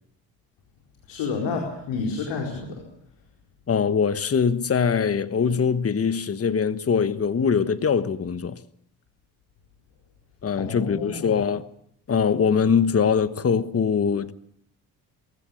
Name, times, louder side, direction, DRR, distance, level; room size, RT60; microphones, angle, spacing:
voice 1, 1.1-2.8 10.6-11.5, left 4 dB, 80° left, 4.5 m, -30 dB
voice 2, 3.7-8.6 10.4-11.6 12.1-14.3, left 6 dB, 35° left, 1.3 m, -22 dB
22.0 x 16.0 x 8.5 m
supercardioid pair, 60°, 43 cm